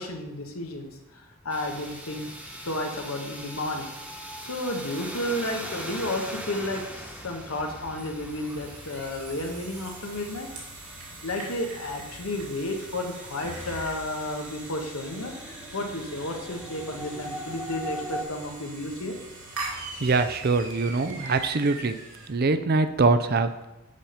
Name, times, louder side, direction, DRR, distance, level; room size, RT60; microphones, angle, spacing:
voice 1, 0.0-2.3 2.6-3.9 4.4-10.5 11.2-19.2, left 1 dB, 80° left, 3 dB, 1.3 m, -32 dB
sound 1, 1.5-18.2, right 1 dB, 5° right, 1.2 m, -41 dB
sound 2, 7.9-22.3, right 2 dB, 85° right, 2.3 m, -42 dB
voice 2, 20.0-22.0 22.3-23.7, right 3 dB, 45° right, 10 dB, 0.5 m, -23 dB
7.3 x 5.2 x 5.7 m, 0.95 s
head